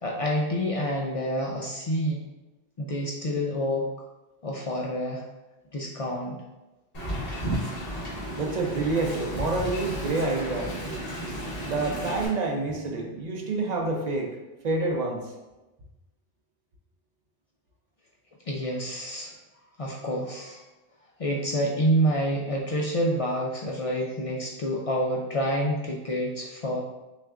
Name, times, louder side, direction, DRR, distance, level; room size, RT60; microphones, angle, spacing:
voice 1, 0.0-2.2 2.8-3.9 4.4-5.2 5.7-6.4 18.5-19.3 19.8-20.6 21.2-26.8, equal, 60° left, -1 dB, 0.3 m, -28 dB
Wind, 6.9-12.3, right 1 dB, 35° left, 1.2 m, -33 dB
voice 2, 8.4-10.7 11.6-14.4 14.6-15.3, right 3 dB, 45° right, 0 dB, 0.7 m, -28 dB
6.0 x 2.4 x 2.4 m, 1.1 s
omnidirectional pair, 1.1 m